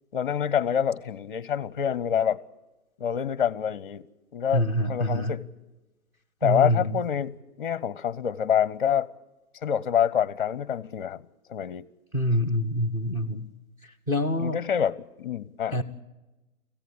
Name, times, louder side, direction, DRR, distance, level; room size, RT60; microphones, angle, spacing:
voice 1, 0.1-2.4 3.0-4.1 4.3-5.4 6.4-9.1 9.6-11.2 11.5-11.8 14.4-15.8, left 8 dB, 35° left, 0.7 m, -26 dB
voice 2, 4.5-5.4 6.4-7.0 12.1-13.5 14.1-14.6 15.7-15.8, equal, 5° right, 0.7 m, -26 dB
24.5 x 15.5 x 9.7 m
figure-of-eight pair, 140°, 43 cm